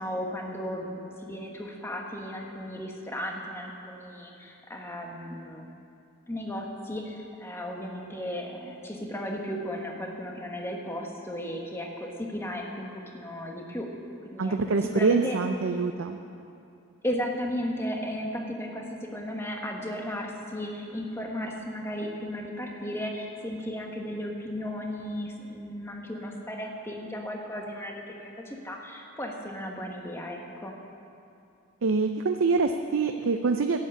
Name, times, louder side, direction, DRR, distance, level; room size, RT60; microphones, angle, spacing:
voice 1, 0.0-5.7 6.3-13.9 14.3-15.4 17.0-30.8, equal, 10° left, 1 dB, 1.3 m, -35 dB
voice 2, 14.4-16.2 31.8-33.8, right 4 dB, 65° right, 6 dB, 0.5 m, -25 dB
11.5 x 8.4 x 8.6 m, 2.6 s
head